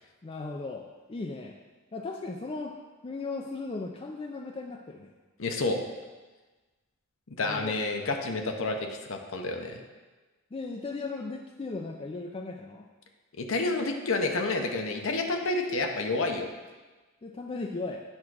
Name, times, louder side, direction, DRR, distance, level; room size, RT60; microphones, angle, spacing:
voice 1, 0.2-1.6 1.9-2.8 3.0-5.1 7.4-7.8 10.5-12.9 17.2-18.0, left 3 dB, 25° left, 2 dB, 0.4 m, -37 dB
voice 2, 5.4-5.8 7.3-9.8 13.4-16.5, left 3 dB, 70° left, 3 dB, 0.8 m, -29 dB
8.7 x 3.6 x 6.2 m, 1.3 s
head